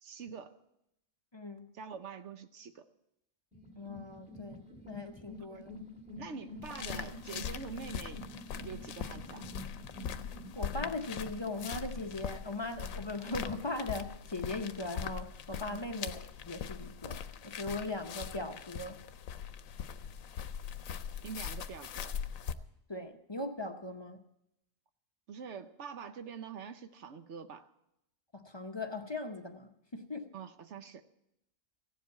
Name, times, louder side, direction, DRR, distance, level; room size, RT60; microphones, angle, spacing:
voice 1, 0.0-0.6 1.7-2.9 5.5-5.6 6.2-8.2 8.6-9.4 15.7-15.9 20.9-21.0 21.2-22.1 25.3-27.7 30.3-31.0, right 6 dB, 65° right, 9 dB, 1.0 m, -45 dB
voice 2, 1.3-1.7 3.8-5.8 10.6-19.0 22.9-24.2 28.3-30.3, left 2 dB, 25° left, 5 dB, 0.6 m, -39 dB
Ship Sound Design, 3.5-13.5, left 1 dB, 5° right, 2.2 m, -49 dB
sound 1, 6.6-22.5, left 8 dB, 80° left, 1.1 m, -41 dB
16.0 x 7.5 x 8.4 m, 0.84 s
omnidirectional pair, 1.4 m